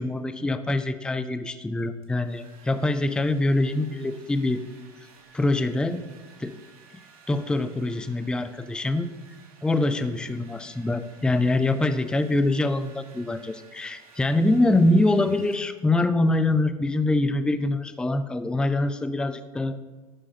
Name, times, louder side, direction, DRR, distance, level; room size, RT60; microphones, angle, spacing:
voice 1, 0.0-4.6 5.3-6.0 6.4-6.5 7.3-9.1 9.6-19.8, left 2 dB, 5° left, 11 dB, 0.5 m, -24 dB
Domestic sounds home sounds, 1.8-16.1, right 5 dB, 75° right, 1.9 m, -55 dB
11.5 x 4.9 x 7.4 m, 1.3 s
hypercardioid pair, 105°, 19 cm